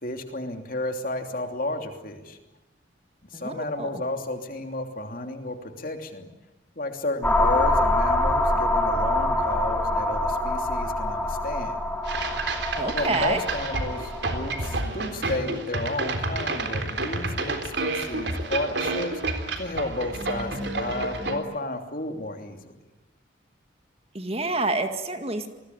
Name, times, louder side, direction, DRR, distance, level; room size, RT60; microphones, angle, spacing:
voice 1, 0.0-2.4 3.3-6.3 6.8-11.8 12.8-19.1 19.5-22.7, left 2 dB, 45° left, 5 dB, 3.0 m, -32 dB
voice 2, 3.3-3.9 12.8-13.4 24.1-25.5, right 2 dB, 30° right, 7 dB, 2.0 m, -28 dB
sound 1, 7.2-14.8, left 1 dB, 10° left, 2.9 m, -25 dB
sound 2, 12.0-21.4, right 3 dB, 65° right, 3.7 m, -30 dB
28.0 x 20.5 x 9.5 m, 1.1 s
head